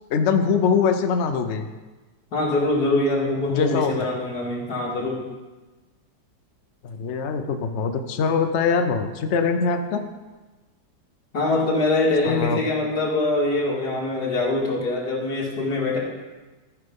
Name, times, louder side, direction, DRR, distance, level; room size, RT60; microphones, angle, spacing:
voice 1, 0.1-1.7 3.5-3.9 6.8-10.0 12.3-12.6, left 5 dB, 85° left, 7 dB, 0.6 m, -22 dB
voice 2, 2.3-5.2 11.3-16.0, left 2 dB, 50° left, -3 dB, 2.6 m, -23 dB
13.5 x 5.8 x 5.3 m, 1.2 s
omnidirectional pair, 2.2 m